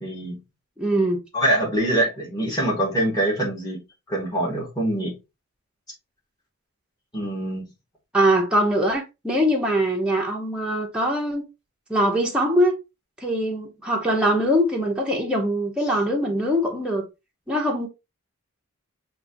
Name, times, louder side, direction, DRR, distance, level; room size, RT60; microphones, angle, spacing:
voice 1, 0.0-0.4 1.3-3.8 4.1-5.2 7.1-7.6, right 1 dB, 15° left, 1.9 m, -24 dB
voice 2, 0.8-1.2 8.1-11.4 11.9-12.7 13.2-17.1 17.5-17.9, equal, 5° right, 0.9 m, -22 dB
5.7 x 3.0 x 2.7 m
head